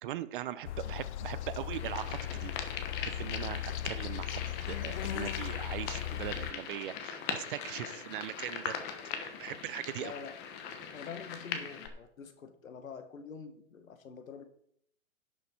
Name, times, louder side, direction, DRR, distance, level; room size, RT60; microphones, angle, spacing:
voice 1, 0.0-2.5 3.0-8.8 9.4-10.1, right 12 dB, 40° right, 15 dB, 0.6 m, -40 dB
sound 1, 0.6-6.5, left 12 dB, 60° left, 0.6 m, -38 dB
sound 2, 1.7-11.9, left 7 dB, 25° left, 1.2 m, -40 dB
voice 2, 10.0-10.3 10.9-14.4, left 6 dB, 85° left, 9 dB, 1.6 m, -46 dB
11.5 x 6.5 x 4.5 m, 0.69 s
hypercardioid pair, 140°, 40 cm